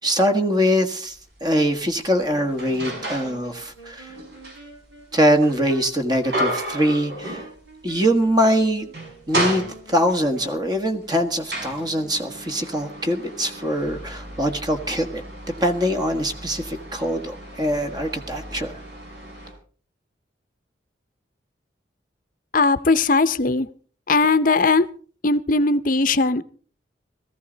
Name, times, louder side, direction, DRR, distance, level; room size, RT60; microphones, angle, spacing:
voice 1, 0.0-4.1 5.1-7.5 7.8-8.9 9.3-15.2 15.6-18.7, equal, 20° right, 6 dB, 1.6 m, -23 dB
sound 1, 1.1-1.3 1.8-3.4 3.8-7.9 8.2-8.4 8.8-10.2 10.9-19.5, right 1 dB, 60° right, 6.2 m, -33 dB
Wind instrument woodwind instrument, 2.3-10.6, equal, 80° right, 6.0 m, -44 dB
voice 2, 22.5-23.7 24.1-24.9 25.2-26.4, left 3 dB, 45° left, 13 dB, 0.7 m, -19 dB
18.5 x 14.5 x 3.9 m, 0.42 s
head